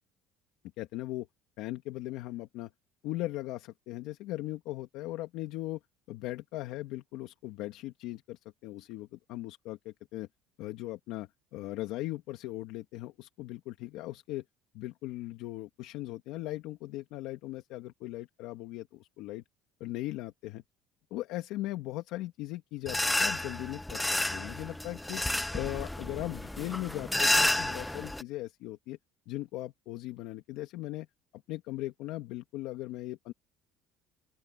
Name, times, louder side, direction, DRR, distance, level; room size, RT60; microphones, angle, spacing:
voice 1, 0.8-1.3 1.6-2.7 3.0-5.8 6.1-10.3 10.6-14.4 14.7-19.4 19.8-20.6 21.1-25.2 25.5-29.0 29.3-31.1 31.5-33.3, left 17 dB, 75° left, 2.5 m, -38 dB
sound 1, 22.9-28.2, left 1 dB, 5° left, 1.0 m, -30 dB
open air
cardioid pair, 125°, 0 cm